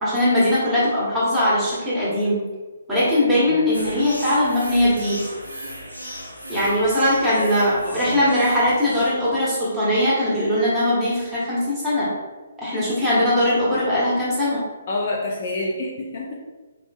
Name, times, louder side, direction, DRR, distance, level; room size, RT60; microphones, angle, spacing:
voice 1, 0.0-2.4 2.9-5.3 6.5-12.1 12.6-14.6, left 1 dB, 10° right, -9 dB, 1.3 m, -20 dB
sound 1, 3.7-9.2, equal, 75° right, 0.8 m, -36 dB
voice 2, 7.8-8.2 14.9-16.4, left 2 dB, 40° left, -1 dB, 0.5 m, -28 dB
4.7 x 2.5 x 2.3 m, 1.3 s
figure-of-eight pair, 135°, 0 cm